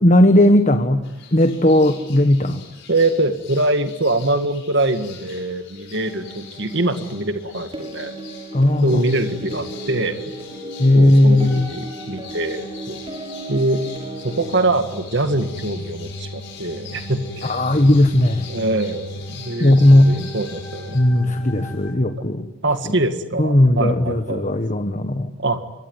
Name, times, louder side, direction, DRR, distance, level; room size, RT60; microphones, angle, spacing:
voice 1, 0.0-1.1 1.3-2.6 8.5-9.0 10.8-11.7 17.4-18.5 19.6-20.3 20.9-22.5 23.4-25.3, left 1 dB, 35° left, 8 dB, 1.4 m, -16 dB
sound 1, 1.0-21.0, left 7 dB, 55° left, 7.1 m, -43 dB
voice 2, 2.9-8.1 8.8-10.3 10.9-13.0 13.5-13.8 14.2-17.6 18.5-21.0 22.6-24.4 25.4-25.6, right 2 dB, 55° right, 8 dB, 2.0 m, -23 dB
sound 2, 5.9-22.0, equal, 75° left, 7.2 m, -38 dB
sound 3, 7.7-14.5, right 1 dB, 25° right, 6.4 m, -35 dB
26.5 x 23.0 x 9.7 m, 1.0 s
head